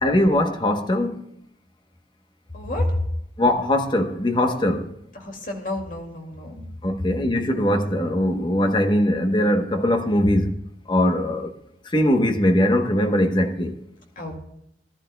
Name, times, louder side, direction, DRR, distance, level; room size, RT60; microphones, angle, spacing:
voice 1, 0.0-1.2 3.4-4.9 6.8-10.6 10.9-11.5 11.8-13.8, left 1 dB, 25° left, 1.0 m, -21 dB
voice 2, 2.5-3.0 5.1-6.6 14.2-14.4, left 1 dB, 50° left, 2.3 m, -29 dB
19.0 x 11.5 x 2.3 m
head